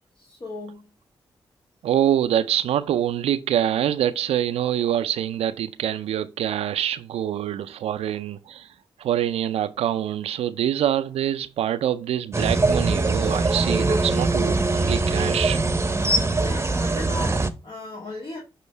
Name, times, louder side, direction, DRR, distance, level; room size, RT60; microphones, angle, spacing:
voice 1, 0.2-0.9 16.4-18.4, left 2 dB, 55° left, 1.8 m, -36 dB
voice 2, 1.8-8.7 9.0-15.6, right 11 dB, 85° right, 0.4 m, -25 dB
sound 1, 12.3-17.5, right 2 dB, 25° right, 0.8 m, -22 dB
8.4 x 3.7 x 3.2 m
supercardioid pair, 45°, 10 cm